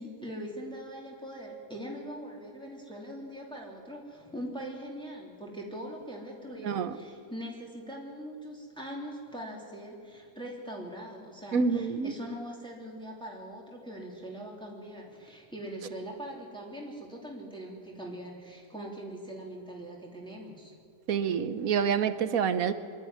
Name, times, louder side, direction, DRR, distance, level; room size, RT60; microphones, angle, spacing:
voice 1, 0.0-20.7, equal, 5° left, -2 dB, 3.0 m, -42 dB
voice 2, 11.5-12.1 21.1-22.7, right 6 dB, 65° right, 12 dB, 1.3 m, -27 dB
23.5 x 12.5 x 9.7 m, 2.2 s
omnidirectional pair, 1.7 m